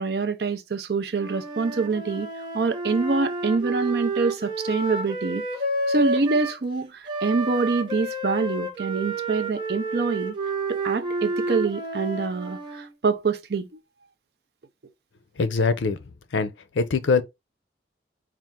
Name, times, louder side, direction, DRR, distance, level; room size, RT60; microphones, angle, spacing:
voice 1, 0.0-2.3 2.5-5.4 5.9-10.3 10.7-13.7, right 4 dB, 60° right, 0.5 m, -25 dB
Wind instrument woodwind instrument, 1.1-6.6 7.1-12.9, right 2 dB, 25° right, 0.9 m, -30 dB
voice 2, 15.4-16.0 16.3-17.2, left 4 dB, 80° left, 0.5 m, -23 dB
4.3 x 2.4 x 3.6 m
head